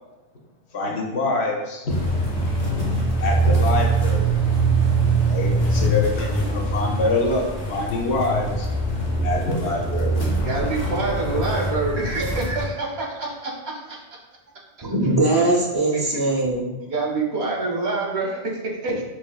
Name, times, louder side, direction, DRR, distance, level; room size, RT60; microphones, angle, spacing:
voice 1, 0.7-2.2 2.7-2.8 3.2-4.4 5.1-8.7 9.2-12.0, left 2 dB, 90° left, 0 dB, 1.0 m, -26 dB
sound 1, 1.9-12.7, right 2 dB, 40° left, 1.0 m, -23 dB
voice 2, 10.4-14.0 15.9-16.2 16.9-19.0, right 3 dB, 80° right, -1 dB, 1.1 m, -26 dB
voice 3, 14.8-16.8 18.9-19.0, right 2 dB, 30° right, -2 dB, 0.4 m, -21 dB
4.8 x 3.0 x 2.3 m, 1.0 s
omnidirectional pair, 1.1 m